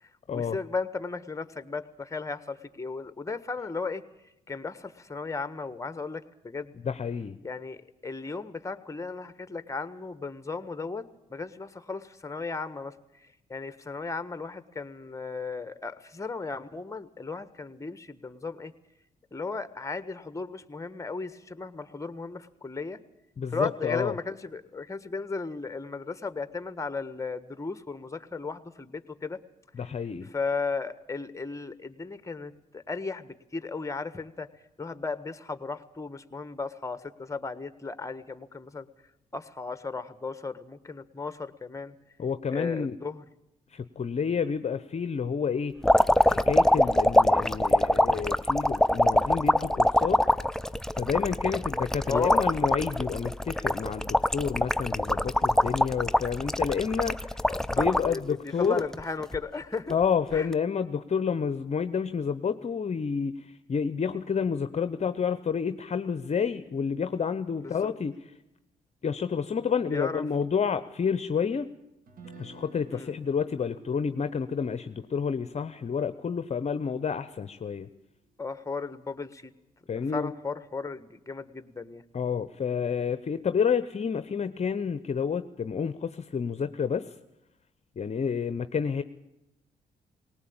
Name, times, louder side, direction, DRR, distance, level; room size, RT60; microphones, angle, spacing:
voice 1, 0.0-4.0 4.5-6.7 7.4-11.0 11.3-18.7 19.3-23.0 23.5-29.4 30.2-34.5 34.8-38.9 39.3-42.0 42.5-43.2 52.1-52.5 57.5-59.9 60.3-60.5 67.6-67.9 69.9-70.2 72.9-73.1 78.4-79.5 79.9-82.0, left 4 dB, 20° left, 13 dB, 1.5 m, -35 dB
voice 2, 6.8-7.4 23.4-24.1 29.8-30.3 42.2-43.0 43.7-45.7 46.3-50.2 50.9-58.8 59.9-68.1 69.0-71.7 72.4-77.9 79.9-80.3 82.1-87.1 88.0-89.0, left 6 dB, 45° left, 12 dB, 0.9 m, -29 dB
sound 1, 45.8-58.2 58.6-59.4 60.4-60.5, left 1 dB, 5° left, 0.7 m, -23 dB
Guitar, 72.1-78.2, right 2 dB, 60° right, 3.0 m, -54 dB
19.0 x 18.5 x 8.8 m, 0.88 s
supercardioid pair, 60°, 16 cm